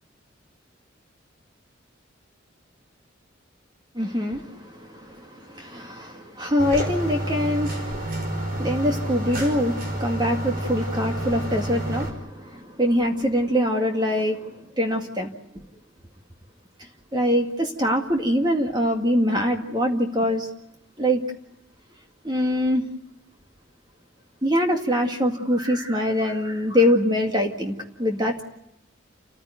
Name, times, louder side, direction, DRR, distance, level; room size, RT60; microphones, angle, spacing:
voice 1, 3.9-15.3 17.1-20.5 21.0-21.2 22.2-22.8 24.4-28.4, equal, 20° right, 3 dB, 2.1 m, -24 dB
sound 1, 6.6-12.1, right 1 dB, 50° right, 5.5 m, -29 dB
29.5 x 15.0 x 9.4 m, 0.87 s
head